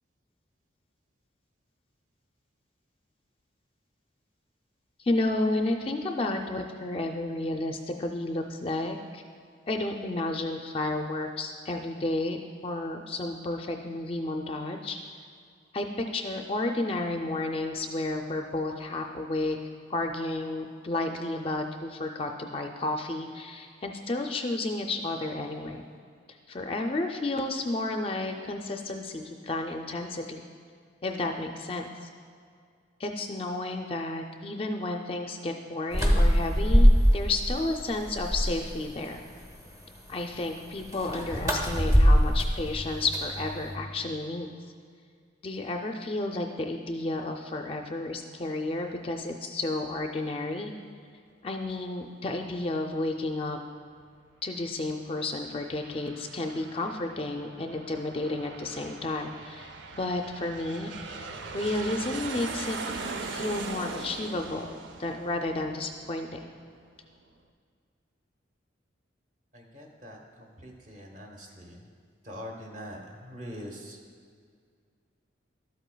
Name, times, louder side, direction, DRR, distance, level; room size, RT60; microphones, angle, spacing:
voice 1, 5.0-9.2 9.7-12.4 12.6-15.0 15.7-19.6 19.9-25.8 26.5-30.5 31.0-31.9 33.0-39.2 40.1-44.6 45.4-50.7 51.4-53.6 54.4-66.5, left 2 dB, 30° left, 4 dB, 0.4 m, -32 dB
sound 1, 35.9-37.5 37.9-38.7 40.9-43.7, equal, 20° right, 0.7 m, -22 dB
Aircraft, 55.4-66.5, right 4 dB, 75° right, 0.5 m, -40 dB
voice 2, 69.5-71.8 72.2-74.0, equal, 40° right, 1 dB, 1.0 m, -43 dB
12.5 x 8.0 x 2.3 m, 2.2 s
head